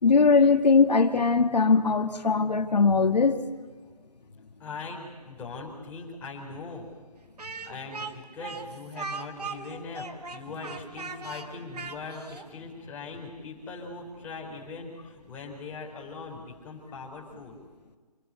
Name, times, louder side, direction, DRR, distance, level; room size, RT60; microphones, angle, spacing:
voice 1, 0.0-3.4, left 4 dB, 90° left, 6 dB, 2.0 m, -20 dB
voice 2, 4.6-6.9 7.7-17.6, left 4 dB, 10° left, -3 dB, 4.3 m, -40 dB
Speech, 7.4-12.5, right 4 dB, 75° right, 2.5 m, -39 dB
27.0 x 20.5 x 8.4 m, 1.4 s
hypercardioid pair, 165°, 21 cm